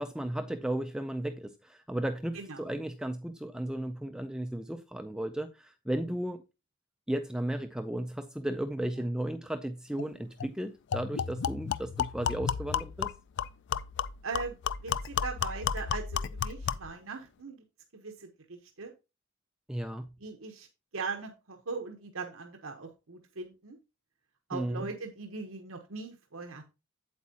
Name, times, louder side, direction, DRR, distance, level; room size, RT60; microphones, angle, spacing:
voice 1, 0.0-6.4 7.1-13.1 19.7-20.1 24.5-24.9, right 1 dB, 5° right, 0.4 m, -34 dB
voice 2, 2.3-2.7 14.2-14.5 14.8-17.6 17.9-18.9 20.2-20.7 20.9-23.8 24.5-26.6, right 4 dB, 70° right, 1.1 m, -40 dB
sound 1, 10.0-10.1 10.4-10.5 10.9-16.9, left 7 dB, 60° left, 0.4 m, -33 dB
8.3 x 8.2 x 2.9 m
head